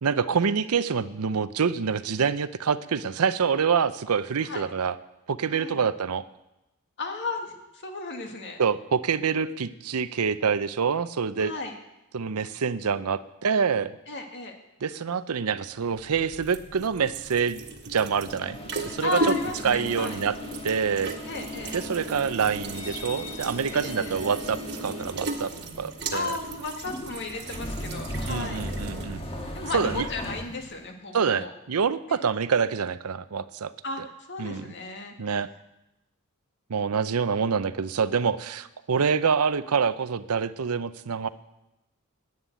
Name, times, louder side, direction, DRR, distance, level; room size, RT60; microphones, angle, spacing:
voice 1, 0.0-5.0 5.3-6.2 8.6-11.5 12.1-13.9 14.8-17.6 17.9-18.6 18.8-19.3 19.6-20.4 20.6-21.1 21.7-25.5 25.8-26.4 28.3-29.2 29.7-30.1 31.1-33.7 34.0-34.1 34.4-34.7 35.2-35.5 36.7-41.3, right 6 dB, 80° right, 14 dB, 0.6 m, -26 dB
voice 2, 5.5-5.8 7.0-8.6 11.4-11.7 14.1-14.6 19.0-20.2 21.3-21.7 23.7-24.1 26.1-28.6 29.5-31.5 32.1-32.2 33.8-35.1, left 3 dB, 55° left, 4 dB, 1.9 m, -34 dB
sound 1, 15.8-30.8, right 2 dB, 50° right, 1.5 m, -37 dB
sound 2, 18.3-30.4, left 1 dB, 25° left, 1.5 m, -38 dB
11.0 x 8.8 x 9.1 m, 0.93 s
head